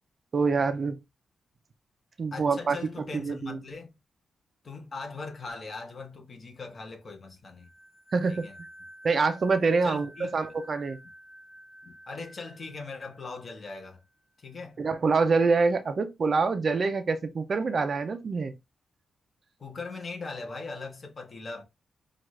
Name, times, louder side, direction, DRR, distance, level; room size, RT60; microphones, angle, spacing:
voice 1, 0.3-1.0 2.2-2.8 3.1-3.6 8.1-8.5 9.0-11.0 14.8-18.5, right 4 dB, 40° right, 0.5 m, -25 dB
voice 2, 2.3-3.9 4.6-7.7 8.3-8.6 9.8-10.3 11.8-14.0 14.4-14.8 19.6-21.6, left 3 dB, 35° left, 1.0 m, -40 dB
sound 1, 7.6-14.0, equal, 50° left, 1.9 m, -51 dB
5.9 x 2.4 x 3.1 m
wide cardioid pair, 150°, 0 cm